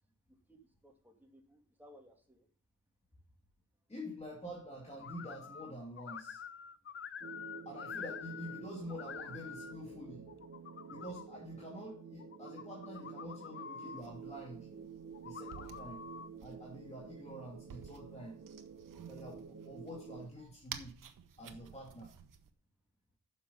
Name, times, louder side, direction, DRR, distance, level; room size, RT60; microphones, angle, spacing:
voice 1, 0.3-2.5, equal, 5° right, 1 dB, 2.5 m, -61 dB
voice 2, 3.9-6.4 7.7-10.3 10.9-14.7 15.2-16.0 16.4-18.4 19.1-21.0 21.4-22.1, equal, 20° left, -2 dB, 2.3 m, -47 dB
sound 1, 5.0-5.7 6.0-8.6 8.9-9.7 10.3-11.3 12.2-14.0 15.1-16.3, left 7 dB, 40° left, 0.5 m, -47 dB
sound 2, 7.2-20.3, right 6 dB, 45° right, 1.3 m, -50 dB
sound 3, 14.0-22.5, right 7 dB, 85° right, 1.1 m, -53 dB
10.0 x 6.7 x 5.4 m, 0.43 s
wide cardioid pair, 150°, 32 cm